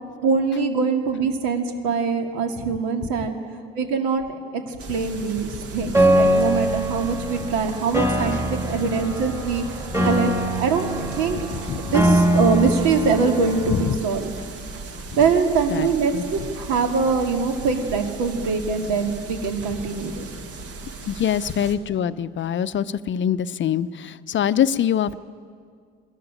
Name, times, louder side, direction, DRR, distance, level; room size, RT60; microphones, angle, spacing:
voice 1, 0.2-3.3 3.8-4.2 4.5-10.3 10.6-11.4 11.8-14.4 15.1-20.3, right 5 dB, 70° right, 4 dB, 2.4 m, -23 dB
sound 1, 4.8-21.8, right 3 dB, 50° right, 2.0 m, -37 dB
Piano, 5.9-13.9, right 1 dB, 10° right, 2.7 m, -23 dB
voice 2, 11.5-12.0 13.7-14.0 15.1-15.2 15.7-15.9 16.1-16.2 21.1-25.2, left 9 dB, 40° left, 14 dB, 0.6 m, -24 dB
20.0 x 13.5 x 10.0 m, 2.1 s
hypercardioid pair, 65°, 31 cm